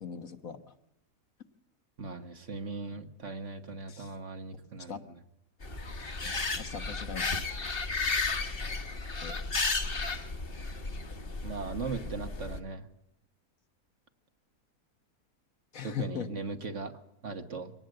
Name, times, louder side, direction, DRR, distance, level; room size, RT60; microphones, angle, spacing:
voice 1, 0.0-0.6 3.9-4.0 4.9-5.0 6.2-7.2 9.2-9.3 15.7-16.3, left 7 dB, 60° left, 8 dB, 1.6 m, -39 dB
voice 2, 2.0-5.2 11.4-12.9 15.8-17.7, right 4 dB, 50° right, 7 dB, 1.8 m, -39 dB
sound 1, 5.6-12.6, left 3 dB, 35° left, 1.6 m, -34 dB
24.0 x 18.5 x 7.9 m, 0.83 s
omnidirectional pair, 1.7 m